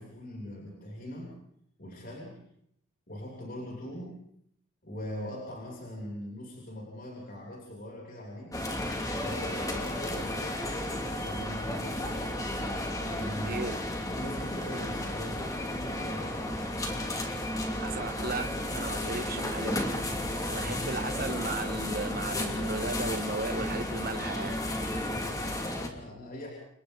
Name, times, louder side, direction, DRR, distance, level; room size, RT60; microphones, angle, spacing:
voice 1, 0.0-1.3 1.8-2.4 3.1-4.1 4.8-8.6 9.2-12.6 13.0-13.6 14.1-15.5 15.8-16.6 20.6-21.0 24.4-26.5, left 1 dB, 45° left, -2 dB, 8.0 m, -41 dB
sound 1, 8.5-25.9, left 1 dB, 15° left, 2.8 m, -33 dB
voice 2, 13.4-13.7 17.8-19.9 20.5-24.6, right 3 dB, 45° right, 6 dB, 1.6 m, -35 dB
30.0 x 29.5 x 4.2 m, 0.71 s
head